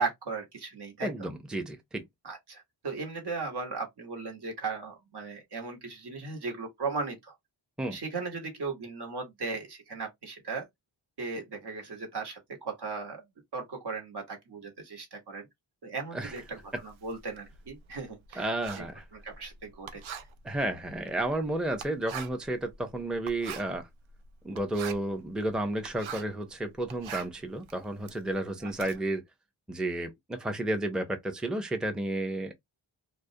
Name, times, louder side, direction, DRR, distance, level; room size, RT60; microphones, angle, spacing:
voice 1, 0.0-1.3 2.2-7.3 7.9-10.6 11.2-13.2 13.5-15.5 15.8-18.5 18.8-18.9 19.1-20.3 28.6-28.7, right 4 dB, 55° right, 1.1 m, -37 dB
voice 2, 1.0-2.0 7.8-8.0 16.1-16.3 18.4-19.0 20.4-23.9 24.4-29.2 29.7-32.5, right 1 dB, ahead, 0.5 m, -32 dB
Writing, 16.2-26.4 26.8-28.9, right 7 dB, 80° right, 0.6 m, -44 dB
2.3 x 2.1 x 2.6 m
cardioid pair, 50°, 47 cm